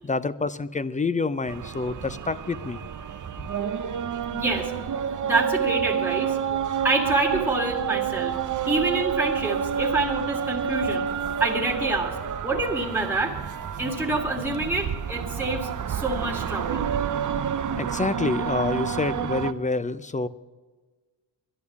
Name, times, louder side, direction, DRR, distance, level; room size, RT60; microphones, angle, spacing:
voice 1, 0.0-2.9 17.8-20.3, left 3 dB, 20° left, 16 dB, 0.4 m, -27 dB
sound 1, 1.5-19.5, right 8 dB, 40° right, 0.7 m, -29 dB
voice 2, 4.3-4.7 5.0-6.4 6.8-8.3 8.7-11.1 11.4-12.1 12.4-13.4 13.8-16.9, right 2 dB, 5° right, 0 dB, 1.9 m, -27 dB
11.0 x 11.0 x 7.0 m, 1.3 s
cardioid pair, 105°, 46 cm